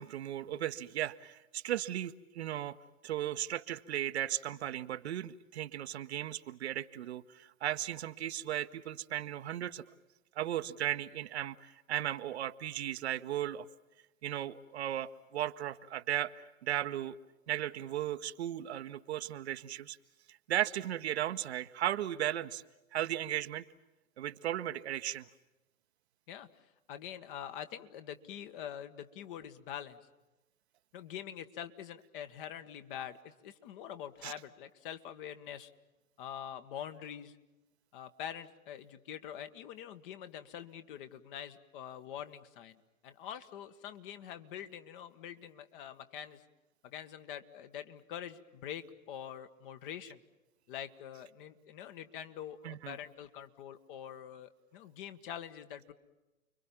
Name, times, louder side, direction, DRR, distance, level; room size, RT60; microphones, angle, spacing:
voice 1, 0.0-2.8 3.0-9.8 10.4-13.7 14.2-16.3 16.6-17.2 17.5-20.0 20.3-22.6 22.9-23.6 24.2-25.3 34.2-34.3 52.6-53.0, right 12 dB, 50° right, 10 dB, 1.1 m, -36 dB
voice 2, 26.9-30.0 30.9-35.7 36.2-37.3 37.9-42.8 43.0-46.4 46.8-50.2 50.7-55.9, left 9 dB, 40° left, 10 dB, 1.7 m, -45 dB
30.0 x 23.5 x 7.3 m, 1.0 s
figure-of-eight pair, 120°, 42 cm